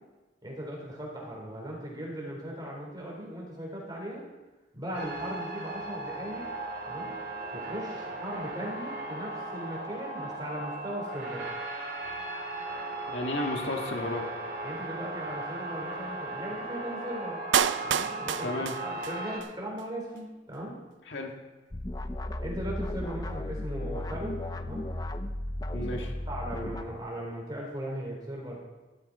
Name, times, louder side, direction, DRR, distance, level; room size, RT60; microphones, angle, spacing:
voice 1, 0.4-4.2 4.7-6.5 6.9-7.1 7.5-11.5 14.6-17.4 17.8-18.5 18.8-20.8 22.4-24.9 25.7-28.6, equal, 25° right, -2 dB, 3.9 m, -38 dB
sound 1, 4.9-19.4, right 2 dB, 60° right, 2.7 m, -37 dB
voice 2, 13.1-14.2 18.4-18.7 21.1-21.3 25.7-26.1, left 1 dB, 75° left, 2 dB, 1.9 m, -32 dB
Clapping, 17.5-19.5 19.8-19.9, right 8 dB, 85° right, 0.5 m, -28 dB
sound 2, 21.7-26.8, left 1 dB, 20° left, 0.6 m, -35 dB
13.5 x 13.5 x 4.2 m, 1.2 s
head